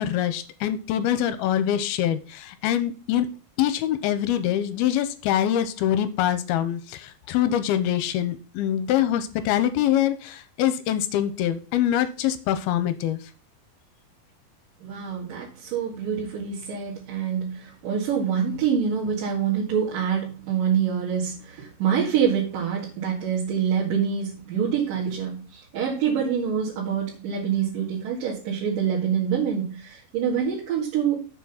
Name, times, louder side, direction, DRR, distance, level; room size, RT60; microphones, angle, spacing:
voice 1, 0.0-3.3 3.6-13.2, left 11 dB, 80° left, 11 dB, 2.6 m, -24 dB
voice 2, 14.8-31.3, right 7 dB, 60° right, -6 dB, 3.5 m, -26 dB
7.4 x 6.1 x 5.7 m, 0.35 s
omnidirectional pair, 4.6 m